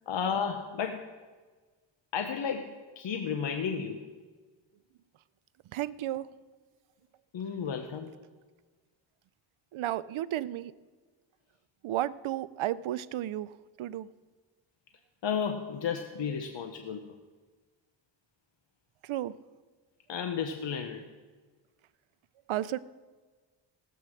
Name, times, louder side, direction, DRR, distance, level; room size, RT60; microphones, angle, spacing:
voice 1, 0.1-1.1 2.1-4.0 7.3-8.1 15.2-17.1 20.1-21.0, left 6 dB, 65° left, 6 dB, 0.9 m, -33 dB
voice 2, 5.7-6.3 9.7-10.7 11.8-14.1 19.0-19.4 22.5-22.8, right 13 dB, 80° right, 17 dB, 0.6 m, -33 dB
16.5 x 7.9 x 6.4 m, 1.4 s
wide cardioid pair, 105°, 47 cm